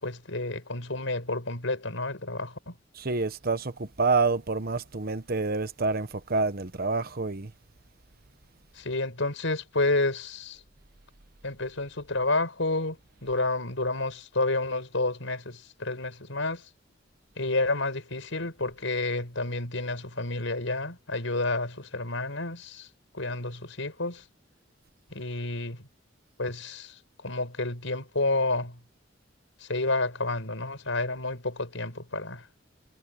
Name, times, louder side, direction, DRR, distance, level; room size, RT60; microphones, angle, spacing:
voice 1, 0.0-2.7 8.8-10.6 11.4-16.6 17.4-22.9 23.1-24.2 25.1-25.9 26.4-28.8 29.6-32.4, left 2 dB, 80° left, 5.5 m, -30 dB
voice 2, 3.0-7.5, right 4 dB, 50° right, 1.1 m, -28 dB
head